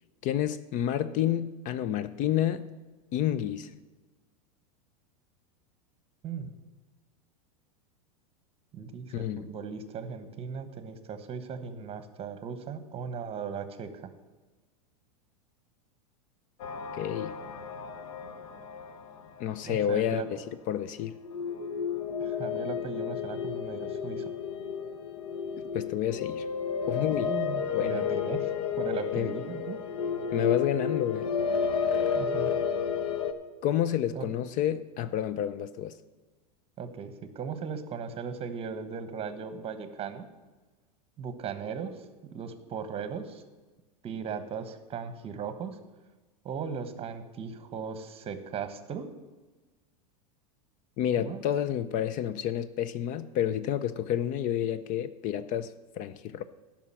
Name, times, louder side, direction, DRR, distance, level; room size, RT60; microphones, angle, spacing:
voice 1, 0.2-2.7 3.1-3.7 9.1-9.5 17.0-17.3 19.4-20.4 20.7-21.1 25.7-26.5 26.9-27.3 27.7-28.0 29.1-29.3 30.3-31.3 33.6-35.9 51.0-56.4, left 10 dB, 40° left, 14 dB, 0.5 m, -29 dB
voice 2, 8.7-14.1 19.6-20.3 22.2-24.2 27.2-28.5 28.8-29.8 32.1-32.6 34.1-34.3 36.8-40.3 41.2-43.4 44.0-45.8 46.4-49.1 51.2-51.4, right 6 dB, 30° right, 10 dB, 1.2 m, -37 dB
sound 1, 16.6-20.0 21.2-33.3, left 6 dB, 60° left, 1.1 m, -32 dB
11.0 x 6.0 x 7.5 m, 1.2 s
hypercardioid pair, 100°, 20 cm